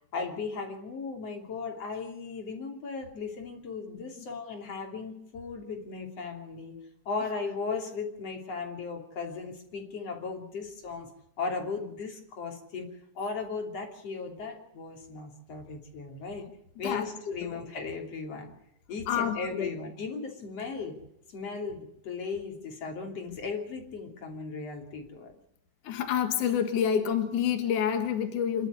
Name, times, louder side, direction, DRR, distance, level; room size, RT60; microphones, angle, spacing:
voice 1, 0.1-6.8 7.1-11.1 11.4-12.9 13.2-16.5 16.8-18.5 18.9-21.0 21.3-25.3, left 4 dB, 50° left, 3 dB, 4.0 m, -37 dB
voice 2, 19.1-19.7 25.8-28.7, left 8 dB, 70° left, 6 dB, 3.2 m, -28 dB
28.0 x 12.0 x 8.2 m, 0.81 s
omnidirectional pair, 3.7 m